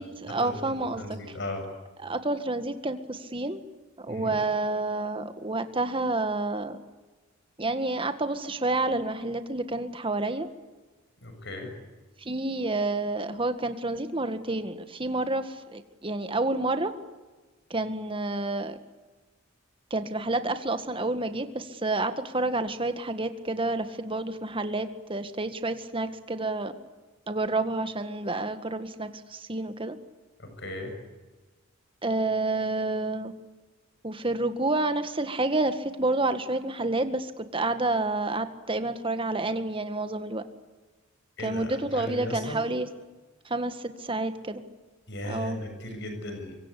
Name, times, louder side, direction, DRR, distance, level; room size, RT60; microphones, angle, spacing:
voice 1, 0.0-1.2 2.0-3.6 4.0-6.8 7.6-10.5 12.2-16.9 17.7-18.8 19.9-26.8 27.3-30.0 32.0-33.3 34.0-40.4 41.4-42.9 43.5-44.6 45.2-45.6, right 2 dB, 25° right, 9 dB, 1.8 m, -29 dB
voice 2, 1.0-1.6 4.1-4.4 11.2-11.7 30.4-30.9 41.4-42.6 45.1-46.6, left 1 dB, 60° left, 5 dB, 7.2 m, -36 dB
25.5 x 24.0 x 8.5 m, 1.2 s
head